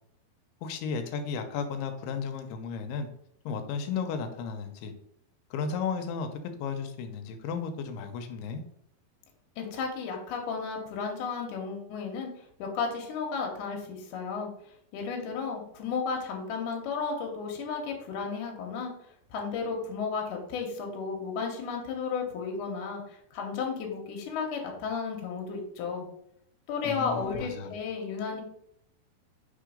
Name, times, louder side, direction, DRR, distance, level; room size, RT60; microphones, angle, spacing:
voice 1, 0.6-3.1 3.5-4.9 5.5-6.3 6.6-8.6 26.9-27.8, left 5 dB, 85° left, 6 dB, 2.6 m, -34 dB
voice 2, 9.6-12.3 12.6-14.5 14.9-18.9 19.3-26.1 26.7-28.4, left 5 dB, 65° left, 1 dB, 2.3 m, -33 dB
5.1 x 3.7 x 5.0 m, 0.71 s
omnidirectional pair, 4.4 m